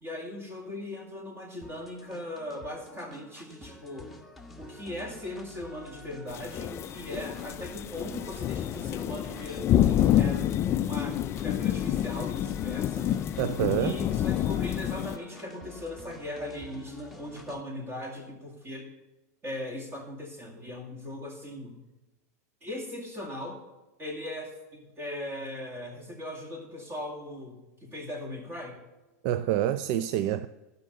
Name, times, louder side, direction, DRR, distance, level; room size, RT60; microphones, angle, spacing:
voice 1, 0.0-4.1 4.6-10.5 10.8-13.1 13.8-18.9 19.4-21.8 22.6-23.6 24.0-28.8, left 1 dB, 25° right, 2.3 m, -39 dB
sound 1, 1.6-17.6, left 2 dB, ahead, 1.2 m, -49 dB
sound 2, 6.3-15.2, left 11 dB, 30° left, 0.3 m, -28 dB
voice 2, 13.4-14.1 29.2-30.5, right 12 dB, 50° right, 0.4 m, -27 dB
14.5 x 5.5 x 6.6 m
hypercardioid pair, 120°, 9 cm